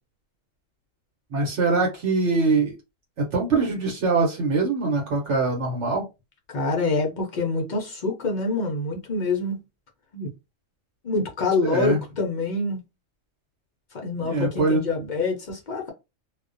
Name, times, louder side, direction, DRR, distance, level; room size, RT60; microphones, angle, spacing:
voice 1, 1.3-2.7 3.2-6.0 11.7-12.0 14.2-14.8, right 3 dB, 65° right, 1.0 m, -23 dB
voice 2, 6.5-9.6 10.1-10.3 11.0-12.8 13.9-15.9, left 3 dB, 60° left, 0.5 m, -26 dB
2.4 x 2.1 x 2.5 m
omnidirectional pair, 1.4 m